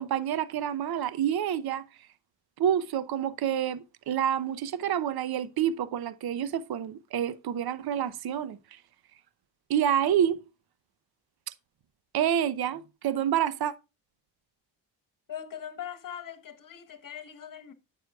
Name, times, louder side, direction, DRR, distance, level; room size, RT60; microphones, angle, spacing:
voice 1, 0.0-1.8 2.6-8.8 9.7-10.4 12.1-13.7, right 9 dB, 55° right, 0.8 m, -28 dB
voice 2, 15.3-17.7, left 9 dB, 45° left, 1.4 m, -41 dB
9.4 x 8.0 x 2.3 m
cardioid pair, 80°, 46 cm